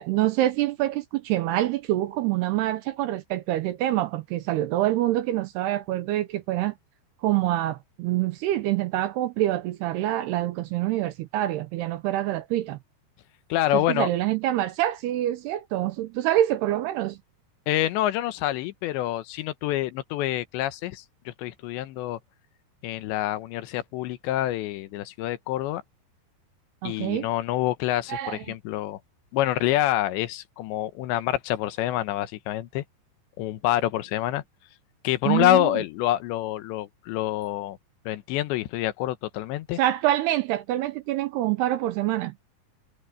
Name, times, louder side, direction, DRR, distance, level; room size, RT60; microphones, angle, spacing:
voice 1, 0.0-6.8 7.2-12.8 13.7-17.2 26.8-27.3 28.1-28.5 35.3-35.7 39.8-42.4, right 14 dB, 75° right, 2.6 m, -26 dB
voice 2, 13.5-14.1 17.7-22.2 22.8-25.8 26.8-29.0 29.3-32.8 33.4-34.4 35.0-37.8 38.1-39.8, left 14 dB, 85° left, 3.3 m, -27 dB
omnidirectional pair, 5.1 m